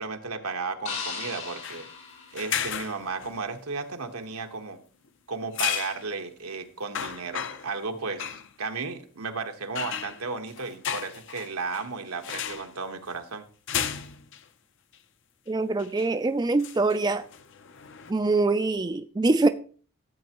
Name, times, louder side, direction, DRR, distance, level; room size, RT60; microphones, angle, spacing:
voice 1, 0.0-1.9 2.3-4.8 5.3-13.4, right 4 dB, 90° right, 1.3 m, -34 dB
sound 1, 0.9-3.1, left 5 dB, 80° left, 5.9 m, -38 dB
sound 2, 1.6-1.9 2.4-3.4 5.5-6.0 6.5-6.6 6.9-7.8 8.2-8.5 9.8-11.9 12.2-12.7 13.7-14.4 14.9-15.0 15.8-16.1 16.6-18.1, left 9 dB, 55° left, 0.6 m, -33 dB
voice 2, 15.5-17.3 18.1-19.5, right 3 dB, 20° right, 0.3 m, -24 dB
14.0 x 8.4 x 3.0 m
head